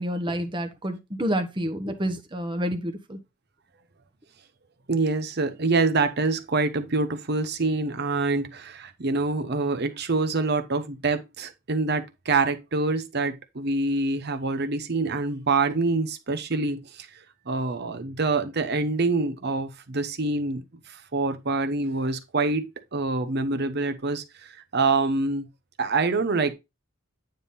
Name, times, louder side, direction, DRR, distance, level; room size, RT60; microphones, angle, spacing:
voice 1, 0.0-3.2, equal, 25° right, 1.1 m, -29 dB
voice 2, 4.9-17.1 17.5-25.5 25.8-26.5, right 3 dB, 50° right, 0.9 m, -26 dB
9.1 x 3.6 x 4.1 m
head